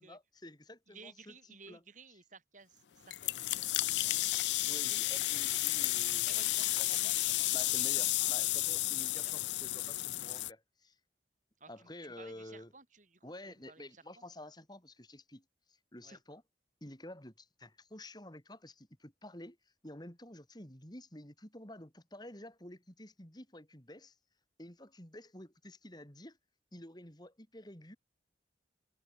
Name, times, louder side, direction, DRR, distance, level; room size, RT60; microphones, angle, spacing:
voice 1, 0.0-1.3 1.7-1.8 4.7-6.6 6.9-7.0 7.5-11.0 11.7-12.7 13.2-16.4 16.8-19.6 19.8-24.2 24.6-26.4 26.7-28.0, left 1 dB, 25° left, 4.0 m, -50 dB
voice 2, 0.9-4.3 4.8-5.4 6.3-7.8 8.2-9.7 11.6-14.2 16.0-16.2, right 4 dB, 45° right, 7.2 m, -57 dB
sound 1, 3.1-10.5, left 17 dB, 85° left, 0.6 m, -32 dB
head